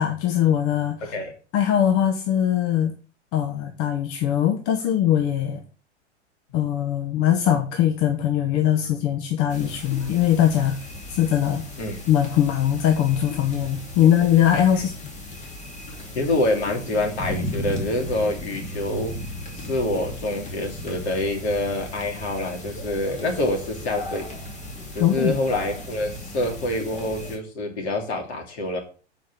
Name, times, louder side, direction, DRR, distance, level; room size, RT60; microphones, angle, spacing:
voice 1, 0.0-1.1 1.5-2.9 3.3-5.6 6.5-10.8 11.1-11.6 12.1-14.9 25.0-25.4, left 10 dB, 40° left, 6 dB, 1.1 m, -21 dB
sound 1, 9.5-27.4, left 1 dB, 20° left, 2.4 m, -36 dB
voice 2, 16.1-19.1 19.5-24.3 24.9-28.8, left 1 dB, 60° left, 2 dB, 3.1 m, -26 dB
7.6 x 5.2 x 6.1 m, 0.38 s
figure-of-eight pair, 100°, 36 cm